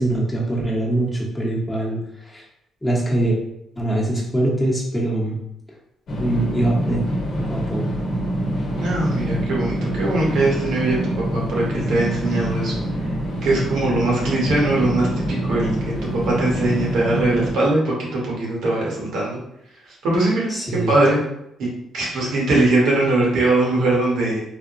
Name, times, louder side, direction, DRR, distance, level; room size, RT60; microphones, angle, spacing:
voice 1, 0.0-2.4 2.8-3.4 3.8-5.4 6.2-7.0 7.4-7.8 20.5-20.9, right 1 dB, 10° left, -4 dB, 0.9 m, -23 dB
sound 1, 6.1-17.5, right 1 dB, 60° left, 0.9 m, -25 dB
voice 2, 8.8-13.0 13.4-19.4 19.9-21.2 21.6-21.7 21.9-24.4, right 2 dB, 80° right, -4 dB, 1.1 m, -21 dB
3.4 x 2.1 x 2.5 m, 0.78 s
cardioid pair, 90°, 0 cm